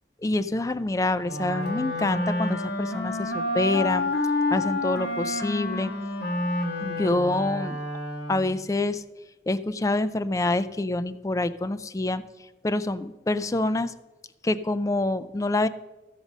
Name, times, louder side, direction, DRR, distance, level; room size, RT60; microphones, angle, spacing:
voice 1, 0.2-4.1 4.5-5.9 6.8-7.8 8.3-9.0 9.5-12.2 12.6-13.9 14.4-15.7, left 2 dB, 20° left, 13 dB, 0.3 m, -26 dB
Wind instrument woodwind instrument, 1.2-8.6, left 2 dB, 70° left, 1.6 m, -29 dB
14.5 x 5.3 x 6.1 m, 1.1 s
head